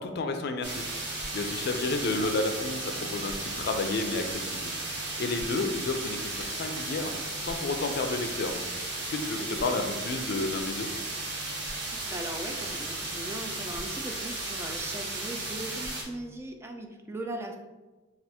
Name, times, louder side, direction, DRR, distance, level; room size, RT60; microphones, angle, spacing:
voice 1, 0.0-4.7 5.2-7.1 7.4-8.6 9.0-10.9, left 3 dB, 55° left, 6 dB, 0.4 m, -31 dB
sound 1, 0.6-16.0, right 2 dB, 60° right, 0.9 m, -35 dB
voice 2, 1.9-2.4 5.5-5.8 9.4-9.9 11.8-17.6, right 1 dB, 15° right, 3 dB, 0.3 m, -39 dB
3.4 x 2.4 x 4.2 m, 1.2 s
head